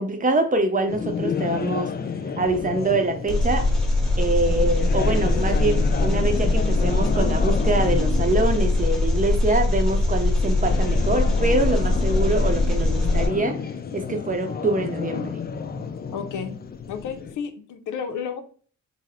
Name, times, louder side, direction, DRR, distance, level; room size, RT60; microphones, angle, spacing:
voice 1, 0.0-1.9 2.4-3.7 4.2-13.6 13.9-15.4, right 2 dB, 25° right, 6 dB, 0.7 m, -24 dB
sound 1, 0.9-17.4, left 6 dB, 35° left, 0.4 m, -31 dB
Engine, 3.3-13.3, left 2 dB, ahead, 0.9 m, -22 dB
voice 2, 16.1-16.6 16.9-18.4, left 6 dB, 85° left, 8 dB, 0.6 m, -32 dB
3.9 x 2.0 x 4.1 m, 0.43 s
wide cardioid pair, 110°, 30 cm